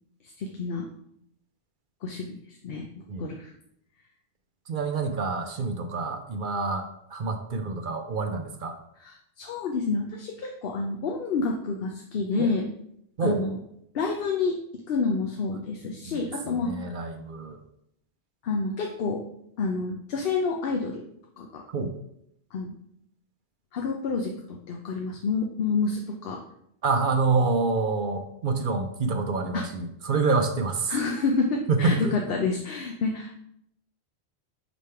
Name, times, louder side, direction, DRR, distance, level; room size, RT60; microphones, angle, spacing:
voice 1, 0.4-0.9 2.0-3.5 9.0-12.7 13.2-13.6 13.9-14.6 14.9-16.9 18.4-19.2 19.6-21.1 21.4-21.6 22.5-22.7 23.7-26.4 29.5-29.6 30.9-33.4, left 4 dB, 65° left, 2 dB, 0.8 m, -29 dB
voice 2, 4.7-8.7 12.4-12.5 13.2-13.4 16.0-17.6 21.7-21.9 26.8-31.0 31.7-32.2, right 4 dB, 55° right, 6 dB, 0.7 m, -27 dB
5.1 x 3.3 x 5.5 m, 0.74 s
omnidirectional pair, 1.1 m